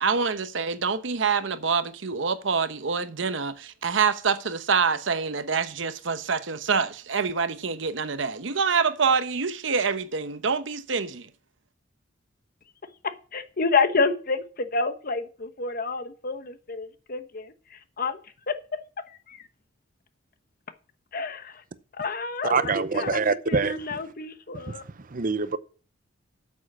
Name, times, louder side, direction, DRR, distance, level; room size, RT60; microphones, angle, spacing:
voice 1, 0.0-11.3, right 5 dB, 70° right, 0.9 m, -26 dB
voice 2, 13.3-17.5 18.0-18.2 18.5-18.6 19.3-19.4 21.1-21.6 22.0-24.8, left 4 dB, 45° left, 1.0 m, -28 dB
voice 3, 22.4-24.0 25.1-25.6, right 4 dB, 45° right, 0.7 m, -25 dB
8.4 x 7.4 x 6.2 m
head